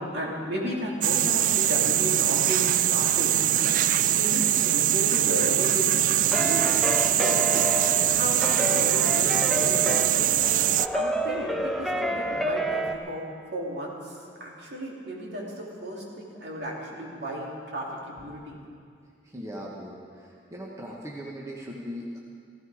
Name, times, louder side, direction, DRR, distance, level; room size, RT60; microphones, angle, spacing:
voice 1, 0.0-3.4 3.6-6.7 7.2-7.4 7.9-10.3 10.9-18.6, equal, 65° right, -3 dB, 2.8 m, -34 dB
sound 1, 1.0-10.9, right 12 dB, 45° right, 0.3 m, -23 dB
sound 2, 6.3-12.9, right 1 dB, ahead, 0.6 m, -29 dB
voice 2, 19.2-22.2, equal, 15° right, -3 dB, 1.2 m, -39 dB
16.0 x 15.0 x 4.9 m, 2.2 s
head